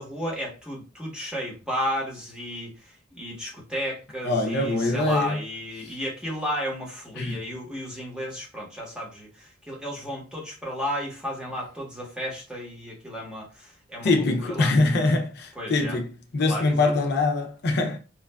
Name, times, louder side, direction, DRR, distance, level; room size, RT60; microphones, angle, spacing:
voice 1, 0.0-14.7 15.5-16.0 16.4-16.9, equal, 5° right, 0.9 m, -33 dB
voice 2, 4.2-5.4 7.2-7.4 14.0-18.0, left 2 dB, 55° left, 0.5 m, -23 dB
3.0 x 2.3 x 2.2 m
head